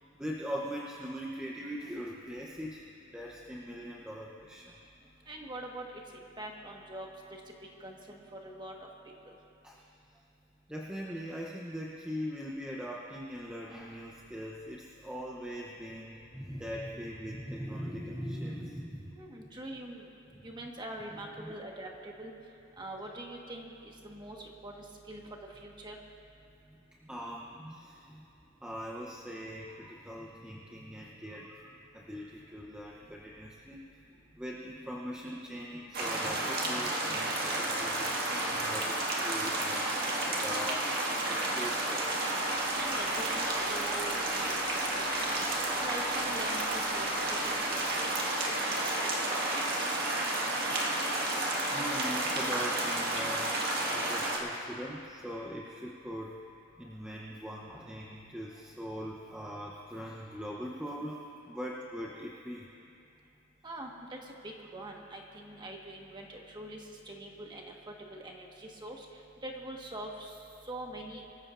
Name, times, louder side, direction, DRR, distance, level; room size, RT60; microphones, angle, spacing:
voice 1, 0.2-4.7 9.6-9.8 10.7-19.5 21.1-21.6 27.0-28.3 28.6-34.0 34.3-39.9 40.3-40.9 41.3-42.1 50.8-53.5 53.9-56.4 56.8-62.7, equal, 5° right, -3 dB, 0.7 m, -41 dB
voice 2, 5.3-5.9 6.4-7.4 7.8-8.7 9.3-9.4 19.1-20.0 20.4-22.3 22.8-25.2 25.6-26.0 42.7-44.6 44.9-45.4 45.8-48.1 48.7-48.9 49.3-49.4 49.8-49.9 63.6-64.2 64.4-69.0 69.4-70.3 70.7-71.2, right 1 dB, 20° right, 0 dB, 1.4 m, -43 dB
sound 1, 35.9-54.4, right 1 dB, 45° right, 1.7 m, -31 dB
24.0 x 14.5 x 2.5 m, 2.6 s
head